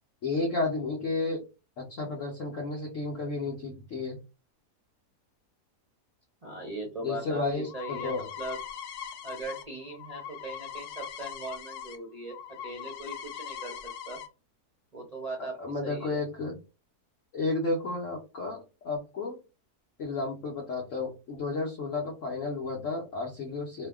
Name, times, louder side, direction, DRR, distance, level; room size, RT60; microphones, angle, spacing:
voice 1, 0.2-1.4 1.8-4.2 7.0-8.2 15.4-16.6 17.3-19.4 20.0-23.9, left 3 dB, 60° left, -2 dB, 1.0 m, -32 dB
voice 2, 6.4-8.6 9.2-12.3 12.6-14.2 14.9-16.2, right 2 dB, 40° right, 0 dB, 0.5 m, -39 dB
sound 1, 7.2-12.0 12.2-14.3, left 9 dB, 85° left, 1.2 m, -41 dB
2.7 x 2.2 x 3.4 m, 0.29 s
omnidirectional pair, 1.7 m